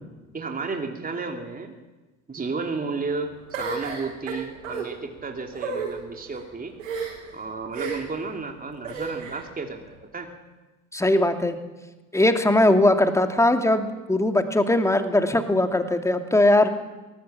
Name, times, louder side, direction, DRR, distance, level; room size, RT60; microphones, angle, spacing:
voice 1, 0.3-1.7 2.3-6.7 7.3-10.3, right 4 dB, 20° right, 3 dB, 3.1 m, -32 dB
sound 1, 3.5-4.9 5.5-5.9 6.8-7.3 7.7-8.2 8.8-9.4, right 4 dB, 80° right, 7.0 m, -31 dB
voice 2, 10.9-11.6 12.1-16.7, left 1 dB, 5° left, 7 dB, 2.6 m, -20 dB
24.0 x 19.5 x 7.3 m, 1.2 s
hypercardioid pair, 65°, 39 cm